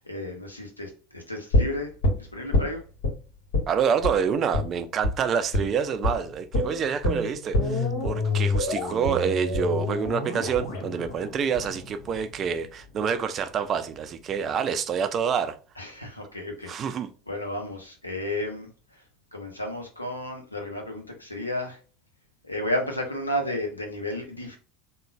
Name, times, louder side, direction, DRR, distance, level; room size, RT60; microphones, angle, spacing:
voice 1, 0.1-1.9 2.3-2.8 15.8-16.7 17.3-18.7 19.3-21.8 22.5-24.6, left 1 dB, 85° left, 0.7 m, -32 dB
sound 1, 1.5-3.2 3.5-3.7 4.0-4.2 4.5-4.7 5.0-5.2 5.5-5.7 6.0-6.2 6.5-12.5 12.8-12.9, left 2 dB, 60° left, 1.5 m, -26 dB
voice 2, 3.7-15.6 16.7-17.1, right 7 dB, 35° right, 0.4 m, -27 dB
3.7 x 2.2 x 3.1 m
figure-of-eight pair, 70°, 0 cm